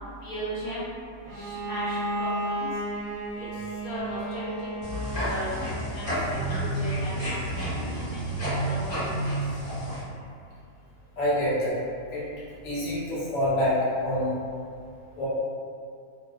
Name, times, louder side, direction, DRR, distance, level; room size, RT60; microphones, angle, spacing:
voice 1, 0.2-0.9 1.3-2.7 3.4-4.7 5.2-7.4 7.7-9.3, equal, 90° left, -10 dB, 1.4 m, -37 dB
Bowed string instrument, 1.3-6.0, right 1 dB, 70° right, 0.9 m, -33 dB
sound 1, 4.8-10.0, right 1 dB, 30° left, 0.9 m, -30 dB
voice 2, 11.2-11.7 12.1-12.3 12.6-14.3 15.2-15.3, left 1 dB, 65° left, -9 dB, 1.1 m, -26 dB
2.9 x 2.2 x 2.3 m, 2.3 s
omnidirectional pair, 1.5 m